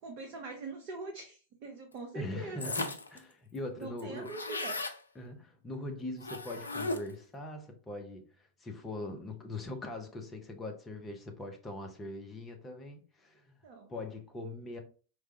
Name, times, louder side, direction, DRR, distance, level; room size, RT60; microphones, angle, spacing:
voice 1, 0.0-2.8 3.8-4.8 13.6-13.9, right 3 dB, 40° right, 0.6 m, -43 dB
voice 2, 2.1-4.3 5.1-13.6 13.9-14.8, left 2 dB, 15° left, 0.7 m, -41 dB
sound 1, 2.6-3.2 3.5-3.6 3.8-5.0 6.2-7.2, left 2 dB, 75° left, 0.3 m, -36 dB
4.6 x 2.3 x 2.7 m
figure-of-eight pair, 90°, 0 cm